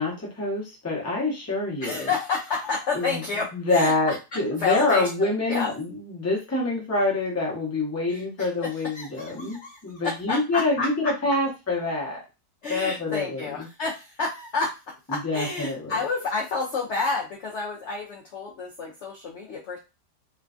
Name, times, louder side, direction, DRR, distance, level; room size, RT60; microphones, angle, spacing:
voice 1, 0.0-2.1 2.9-3.2 3.5-12.2 12.7-13.7 15.1-15.9, left 2 dB, 15° left, -3 dB, 0.5 m, -26 dB
voice 2, 1.8-5.7 8.1-11.1 12.6-14.8 15.1-19.8, left 4 dB, 80° left, -2 dB, 0.6 m, -30 dB
3.1 x 2.2 x 2.4 m, 0.28 s
omnidirectional pair, 1.8 m